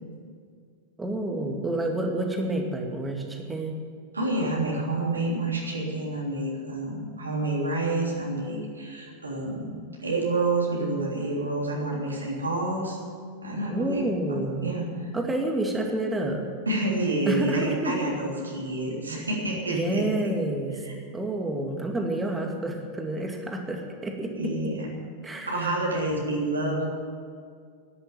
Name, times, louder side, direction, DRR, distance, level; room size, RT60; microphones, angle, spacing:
voice 1, 1.0-3.7 13.7-14.6 15.1-16.4 17.3-17.9 19.7-20.8 21.1-24.3 25.2-25.8, right 1 dB, 10° right, 2 dB, 2.3 m, -29 dB
voice 2, 4.1-9.7 10.0-13.0 13.4-14.0 14.3-14.9 16.6-20.3 20.8-20.9 24.4-24.9 25.5-26.8, right 2 dB, 80° right, -3 dB, 3.4 m, -28 dB
13.0 x 10.5 x 9.5 m, 2.1 s
figure-of-eight pair, 90°, 0 cm